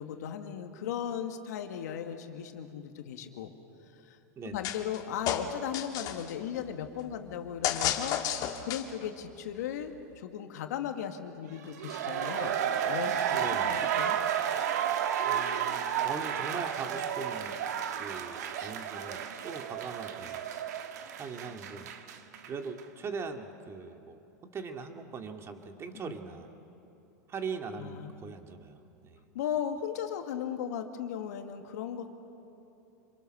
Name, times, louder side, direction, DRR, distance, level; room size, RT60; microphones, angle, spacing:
voice 1, 0.0-3.5 3.9-4.2 4.4-12.5 12.8-13.2 13.6-14.2 26.0-26.2 27.8-28.1 29.3-32.2, left 9 dB, 70° left, 5 dB, 1.9 m, -37 dB
voice 2, 4.4-4.7 13.3-13.8 15.2-17.6 18.0-20.5 21.2-21.9 22.5-24.2 24.5-26.5 27.3-29.3, right 5 dB, 30° right, 5 dB, 2.2 m, -41 dB
sound 1, 4.6-5.0 5.3-6.3 7.6-9.0, left 10 dB, 45° left, 2.0 m, -31 dB
sound 2, 11.6-22.5 22.8-22.9, right 9 dB, 75° right, 1.5 m, -32 dB
26.5 x 22.5 x 6.6 m, 2.9 s
hypercardioid pair, 105°, 9 cm